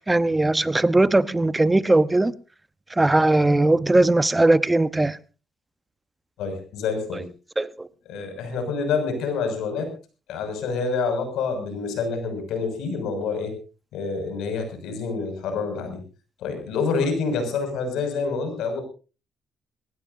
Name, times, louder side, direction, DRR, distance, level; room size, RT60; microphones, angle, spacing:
voice 1, 0.0-2.3 2.9-5.2 7.6-7.9, right 2 dB, 15° right, 0.9 m, -19 dB
voice 2, 6.4-7.3 8.1-9.9 10.3-13.5 13.9-16.0 16.4-18.8, left 4 dB, 85° left, 6.4 m, -27 dB
22.5 x 19.0 x 2.7 m
cardioid pair, 90°, 0 cm